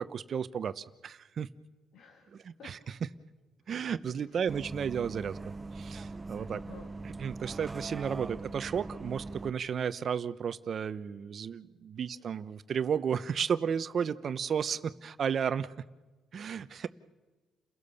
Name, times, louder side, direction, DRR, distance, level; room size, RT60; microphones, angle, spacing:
voice 1, 0.0-1.5 2.3-3.0 3.7-5.4 5.7-6.6 7.0-15.7 16.3-16.9, right 7 dB, 55° right, 13 dB, 0.8 m, -33 dB
voice 2, 1.9-2.7 4.3-4.4 6.5-6.9 16.7-16.9, left 6 dB, 75° left, 4 dB, 2.5 m, -52 dB
Bus, 4.5-9.5, right 3 dB, 20° right, 0.8 m, -41 dB
30.0 x 16.5 x 7.0 m, 1.2 s
cardioid pair, 90°, 0 cm